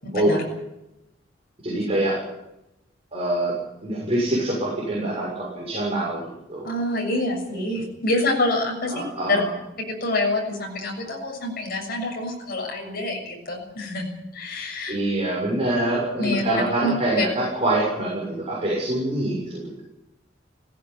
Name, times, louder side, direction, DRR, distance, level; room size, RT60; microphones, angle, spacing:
voice 1, 0.0-0.4 6.6-9.0 9.3-9.4 10.0-14.1 14.3-15.0 16.2-16.4 16.8-17.3, left 2 dB, 55° left, 0 dB, 7.1 m, -26 dB
voice 2, 1.6-2.2 3.1-3.6 3.8-6.7 8.9-9.5 14.9-19.8, right 1 dB, 35° right, -4 dB, 6.7 m, -25 dB
17.5 x 17.0 x 9.8 m, 0.91 s
head